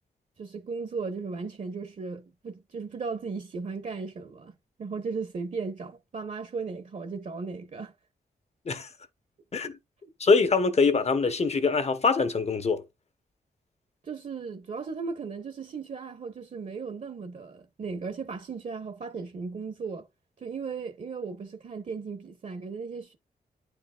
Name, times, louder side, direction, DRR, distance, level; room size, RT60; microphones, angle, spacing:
voice 1, 0.4-7.9 14.0-20.1 20.4-23.2, right 4 dB, 50° right, 1.1 m, -36 dB
voice 2, 10.2-12.8, left 4 dB, 40° left, 1.0 m, -23 dB
9.5 x 4.7 x 2.4 m
cardioid pair, 85°, 16 cm